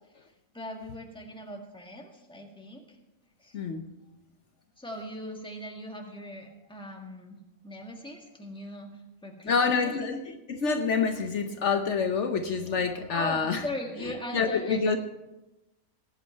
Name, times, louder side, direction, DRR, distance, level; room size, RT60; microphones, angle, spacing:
voice 1, 0.5-2.8 3.4-3.6 4.8-7.4 7.6-8.9 9.2-10.0 13.1-15.0, left 1 dB, 5° left, 2 dB, 1.6 m, -39 dB
voice 2, 3.5-3.8 9.5-13.6 14.3-15.0, left 5 dB, 65° left, 6 dB, 1.1 m, -27 dB
18.5 x 8.6 x 4.5 m, 0.98 s
omnidirectional pair, 1.4 m